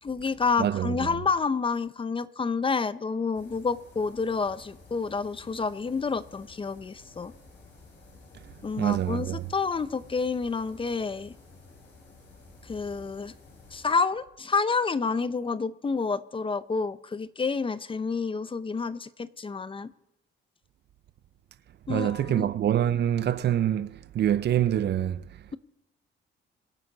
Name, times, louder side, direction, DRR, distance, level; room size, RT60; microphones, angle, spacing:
voice 1, 0.0-7.3 8.6-11.3 12.6-13.3 13.7-19.9 21.9-22.5, left 4 dB, 25° left, 0.6 m, -29 dB
voice 2, 0.6-1.2 8.8-9.5 21.9-25.3, right 10 dB, 60° right, 0.6 m, -26 dB
sound 1, 3.3-13.9, left 3 dB, 60° left, 5.9 m, -53 dB
24.5 x 9.4 x 4.0 m
cardioid pair, 90°, 20 cm